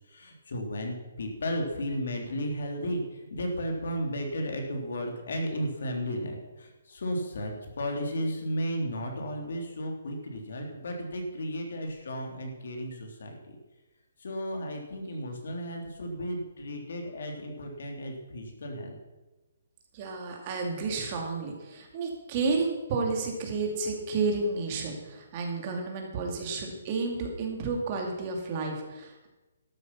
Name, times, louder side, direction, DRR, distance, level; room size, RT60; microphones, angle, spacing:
voice 1, 0.1-13.6 14.2-18.9, equal, 65° left, 2 dB, 3.0 m, -34 dB
voice 2, 19.9-29.3, right 4 dB, 25° right, 2 dB, 2.4 m, -31 dB
12.5 x 8.4 x 5.9 m, 1.1 s
hypercardioid pair, 170°, 0 cm